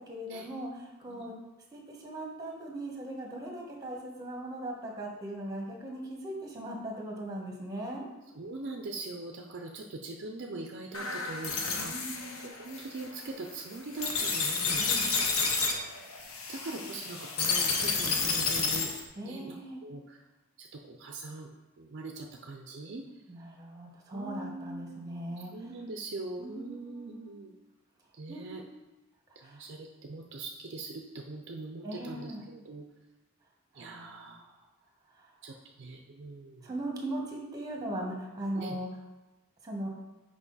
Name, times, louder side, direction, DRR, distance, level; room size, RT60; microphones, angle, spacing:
voice 1, 0.0-1.3 1.7-8.0 11.8-12.4 14.8-15.1 19.2-19.8 23.3-25.5 26.4-27.3 28.3-28.6 29.4-29.6 31.8-32.4 33.7-34.4 35.1-35.5 36.6-38.9 39.6-39.9, right 1 dB, 15° right, 0 dB, 1.2 m, -39 dB
voice 2, 8.3-14.8 16.5-18.9 19.2-20.2 20.6-21.5 21.8-23.1 24.1-27.5 28.1-28.6 29.4-32.8 33.7-34.5 35.4-36.7 38.6-38.8, right 2 dB, 55° right, 2 dB, 0.5 m, -42 dB
sound 1, 10.9-19.0, left 4 dB, 80° left, 0.9 m, -31 dB
5.9 x 5.1 x 4.0 m, 1.1 s
head